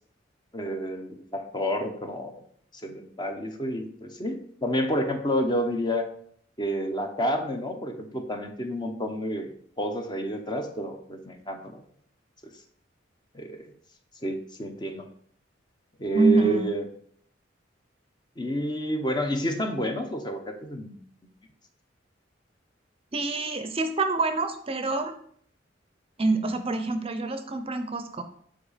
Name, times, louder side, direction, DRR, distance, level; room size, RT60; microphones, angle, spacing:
voice 1, 0.5-2.4 2.8-6.1 6.6-11.8 13.3-13.7 14.2-15.1 16.0-16.8 18.4-21.0, equal, 25° left, 5 dB, 0.9 m, -29 dB
voice 2, 16.1-16.6 23.1-25.1 26.2-28.2, right 3 dB, 30° right, 8 dB, 0.6 m, -26 dB
7.7 x 4.8 x 5.0 m, 0.62 s
head